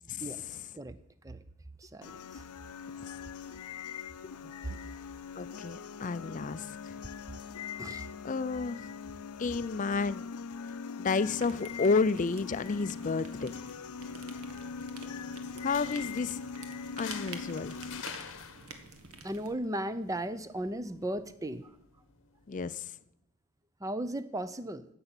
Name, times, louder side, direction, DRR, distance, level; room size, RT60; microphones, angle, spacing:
voice 1, 0.1-0.6 5.3-7.0 8.2-8.9 9.4-10.3 11.0-13.6 15.6-16.4 17.0-17.7 22.5-22.9, left 4 dB, 35° left, 15 dB, 0.4 m, -31 dB
voice 2, 1.8-2.1 4.4-4.9 7.8-8.0 19.2-21.7 23.8-24.9, right 1 dB, 15° right, 13 dB, 0.6 m, -36 dB
sound 1, 2.0-18.0, left 6 dB, 85° left, 0.6 m, -42 dB
sound 2, 11.1-19.5, right 4 dB, 75° right, 1.5 m, -50 dB
sound 3, 15.5-22.5, left 7 dB, 55° left, 1.0 m, -49 dB
10.5 x 7.0 x 8.9 m, 0.74 s
head